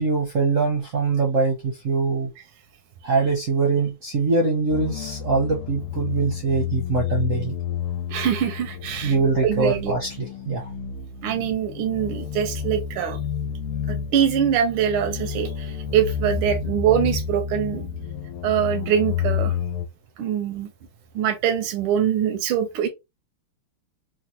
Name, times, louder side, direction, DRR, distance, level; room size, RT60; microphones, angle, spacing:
voice 1, 0.0-2.3 3.0-7.6 9.0-10.7, right 4 dB, 60° right, 0.8 m, -23 dB
sound 1, 4.7-19.9, left 8 dB, 80° left, 1.5 m, -30 dB
voice 2, 8.1-9.2 9.4-9.9 11.2-13.2 13.9-17.9 18.4-19.6 20.2-20.7 21.1-22.9, right 9 dB, 80° right, 1.4 m, -23 dB
3.9 x 2.2 x 2.9 m
omnidirectional pair, 2.4 m